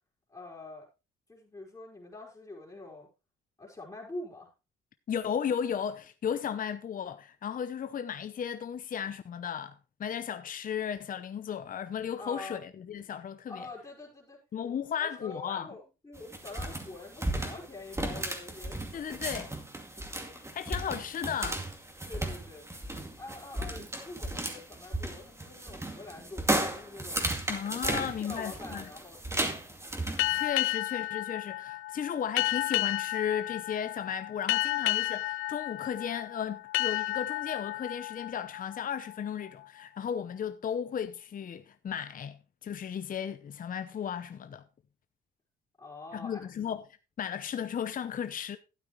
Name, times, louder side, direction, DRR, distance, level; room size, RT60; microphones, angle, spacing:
voice 1, 0.3-0.9 1.3-3.1 3.6-4.5 12.2-12.7 13.5-19.4 20.2-20.4 22.0-22.7 23.2-27.3 27.8-29.7 45.8-46.4, left 2 dB, 20° left, 4.1 m, -45 dB
voice 2, 5.1-13.7 14.5-15.7 18.9-19.5 20.5-21.6 27.5-28.9 30.3-44.6 46.1-46.8 47.2-48.6, left 8 dB, 45° left, 0.7 m, -35 dB
sound 1, 16.1-30.4, right 1 dB, 15° right, 2.4 m, -35 dB
sound 2, 30.2-39.5, left 17 dB, 85° left, 0.4 m, -32 dB
12.5 x 9.0 x 3.1 m
cardioid pair, 90°, 20 cm